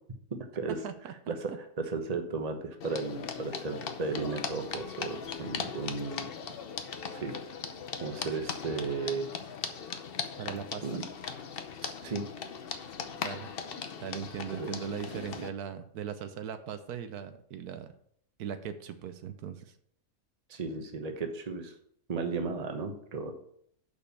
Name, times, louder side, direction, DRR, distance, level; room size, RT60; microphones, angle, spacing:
voice 1, 0.7-1.6 10.4-11.0 13.2-13.5 14.0-17.9 18.4-19.7, right 8 dB, 80° right, 10 dB, 1.2 m, -39 dB
voice 2, 1.8-6.3 7.1-7.4 8.0-9.3 10.8-11.0 11.8-12.3 14.5-14.7 15.1-15.4 20.5-21.7 22.1-23.3, right 4 dB, 30° right, 5 dB, 1.0 m, -35 dB
sound 1, 2.8-15.5, left 6 dB, 50° left, 0.8 m, -39 dB
6.4 x 5.5 x 6.9 m, 0.66 s
omnidirectional pair, 1.7 m